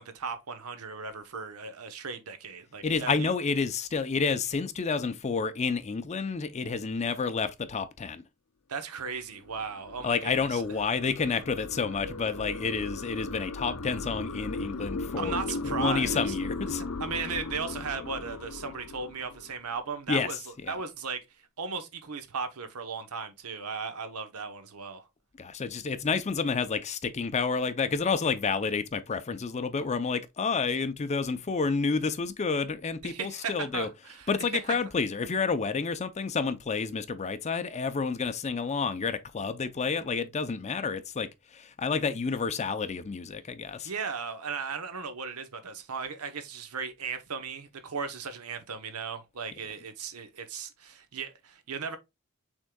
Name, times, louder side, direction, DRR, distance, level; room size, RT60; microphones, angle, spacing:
voice 1, 0.0-3.3 8.7-10.6 15.2-16.3 17.0-21.2 21.6-25.1 33.0-34.3 34.7-34.8 43.8-52.0, right 5 dB, 80° right, 0.8 m, -36 dB
voice 2, 2.8-8.2 10.0-15.4 15.6-16.8 20.1-20.3 20.7-20.8 25.4-33.9 34.3-43.9, left 5 dB, 30° left, 0.5 m, -29 dB
sound 1, 9.2-19.8, left 3 dB, 85° left, 0.7 m, -37 dB
6.2 x 3.6 x 2.2 m
head